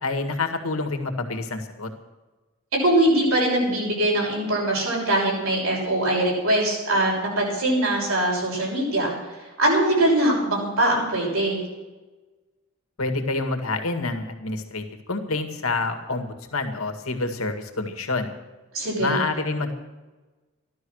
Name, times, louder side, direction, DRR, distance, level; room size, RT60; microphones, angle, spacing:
voice 1, 0.0-1.9 13.0-18.4 19.0-19.7, left 3 dB, 90° left, 6 dB, 1.9 m, -27 dB
voice 2, 2.7-11.6 18.7-19.2, right 1 dB, 90° right, -2 dB, 6.4 m, -22 dB
14.5 x 12.0 x 6.4 m, 1.2 s
head